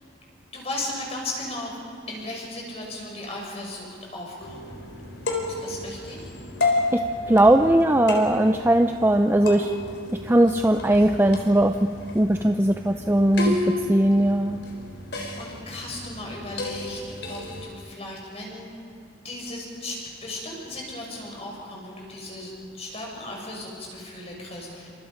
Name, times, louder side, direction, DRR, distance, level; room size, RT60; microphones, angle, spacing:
voice 1, 0.5-1.8 2.1-4.7 5.5-6.3 15.4-17.0 17.3-18.7 19.2-24.9, left 2 dB, 35° left, -2 dB, 6.6 m, -36 dB
sound 1, 4.4-17.7, left 2 dB, 65° left, 4.1 m, -32 dB
voice 2, 6.9-9.7 10.2-11.9 12.1-13.6 13.9-14.6, right 1 dB, 10° right, 6 dB, 0.5 m, -19 dB
29.0 x 26.0 x 5.2 m, 2.4 s
head